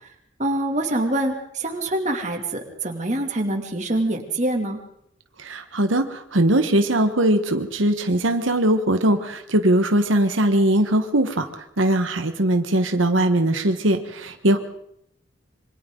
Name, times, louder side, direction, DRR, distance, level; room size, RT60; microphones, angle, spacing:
voice 1, 0.4-4.8, right 1 dB, 35° right, 3 dB, 2.7 m, -25 dB
voice 2, 5.4-14.6, right 1 dB, 85° right, 7 dB, 1.4 m, -20 dB
26.5 x 24.5 x 3.9 m, 0.75 s
head